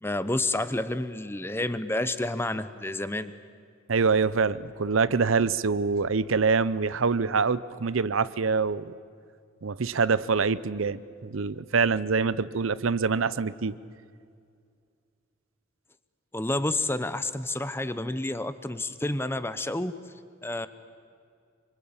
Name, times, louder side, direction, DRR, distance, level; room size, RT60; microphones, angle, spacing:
voice 1, 0.0-3.3 16.3-19.9 20.4-20.7, left 2 dB, 10° left, 13 dB, 0.8 m, -29 dB
voice 2, 3.9-8.9 9.6-13.7, right 4 dB, 80° right, 17 dB, 0.7 m, -25 dB
26.5 x 25.0 x 8.8 m, 2.3 s
head